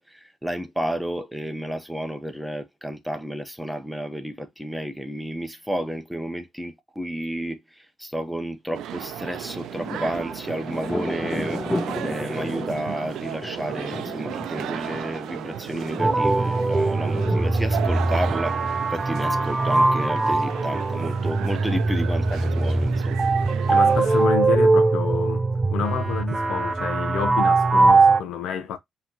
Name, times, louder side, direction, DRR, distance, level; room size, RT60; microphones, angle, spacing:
voice 1, 0.0-11.6 12.0-23.2, right 1 dB, 5° right, 0.9 m, -31 dB
sound 1, 8.7-24.3, right 10 dB, 85° right, 0.5 m, -34 dB
Thunder, 9.3-18.8, left 1 dB, 20° left, 1.3 m, -35 dB
sound 2, 16.0-28.2, right 3 dB, 25° right, 0.5 m, -21 dB
voice 2, 23.7-25.5 25.7-28.8, left 8 dB, 85° left, 0.7 m, -29 dB
5.5 x 3.0 x 2.9 m
cardioid pair, 90°, 0 cm